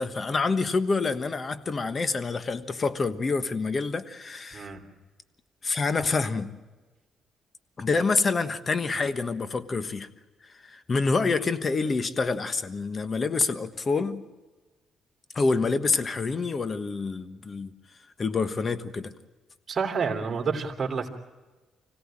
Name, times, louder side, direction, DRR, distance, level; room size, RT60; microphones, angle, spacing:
voice 1, 0.0-4.7 5.6-6.6 7.8-10.1 10.4-14.3 15.3-17.8 18.2-19.1, left 4 dB, 35° left, 11 dB, 1.3 m, -27 dB
voice 2, 4.5-4.8 19.7-21.1, right 5 dB, 40° right, 2 dB, 3.1 m, -29 dB
25.5 x 17.0 x 8.8 m, 1.3 s
cardioid pair, 90°, 0 cm